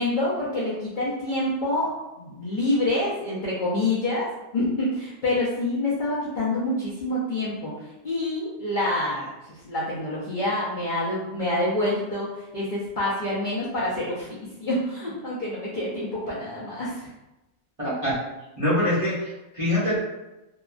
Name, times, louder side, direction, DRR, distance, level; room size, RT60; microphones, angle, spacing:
voice 1, 0.0-9.3 9.6-17.1, left 1 dB, 55° left, -8 dB, 0.5 m, -27 dB
voice 2, 17.8-18.2 18.6-20.0, left 1 dB, 30° right, -10 dB, 0.7 m, -24 dB
2.8 x 2.3 x 2.4 m, 1.0 s
omnidirectional pair, 1.5 m